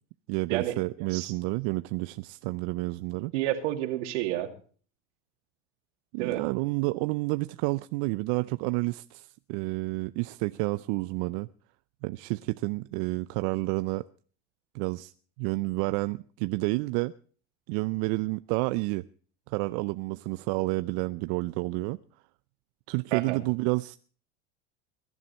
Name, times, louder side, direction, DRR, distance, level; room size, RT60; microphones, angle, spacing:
voice 1, 0.3-3.3 6.1-11.5 12.0-14.0 14.7-15.1 15.4-17.1 17.7-19.0 19.5-22.0 22.9-24.0, right 23 dB, 60° right, 13 dB, 0.6 m, -30 dB
voice 2, 3.3-4.5 6.2-6.4 23.1-23.4, right 14 dB, 75° right, 6 dB, 2.5 m, -29 dB
21.5 x 11.0 x 4.3 m, 0.43 s
hypercardioid pair, 95°, 36 cm